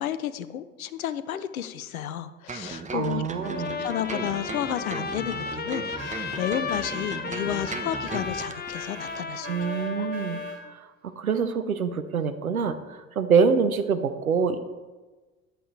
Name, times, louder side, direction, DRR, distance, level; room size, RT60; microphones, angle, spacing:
voice 1, 0.0-3.2 3.8-9.5 10.0-10.1, left 11 dB, 80° left, 14 dB, 0.8 m, -32 dB
sound 1, 2.5-8.8 9.1-9.2, right 4 dB, 15° right, 1.1 m, -37 dB
voice 2, 2.9-3.8 9.5-10.4 10.7-10.8 11.2-14.6, right 5 dB, 85° right, 11 dB, 0.8 m, -25 dB
Trumpet, 3.4-10.6, left 5 dB, 25° left, 1.2 m, -34 dB
sound 2, 6.0-10.6, right 3 dB, 50° right, 2.6 m, -44 dB
14.0 x 9.8 x 3.3 m, 1.3 s
figure-of-eight pair, 65°, 42 cm